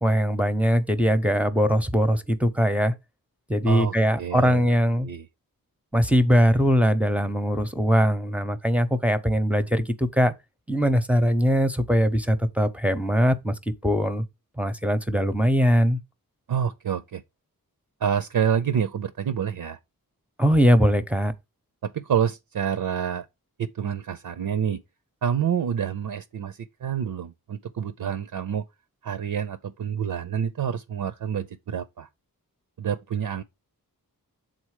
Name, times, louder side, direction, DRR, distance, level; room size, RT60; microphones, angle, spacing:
voice 1, 0.0-2.9 3.5-5.1 5.9-10.3 10.7-13.5 13.8-14.2 14.6-16.0 20.4-21.3, equal, 5° right, 0.7 m, -21 dB
voice 2, 3.7-4.7 5.0-5.3 16.5-17.2 18.0-19.8 21.8-23.3 23.6-24.8 25.2-28.6 29.0-32.1 32.8-33.4, right 8 dB, 70° right, 0.6 m, -28 dB
7.3 x 3.9 x 4.8 m
wide cardioid pair, 90°, 36 cm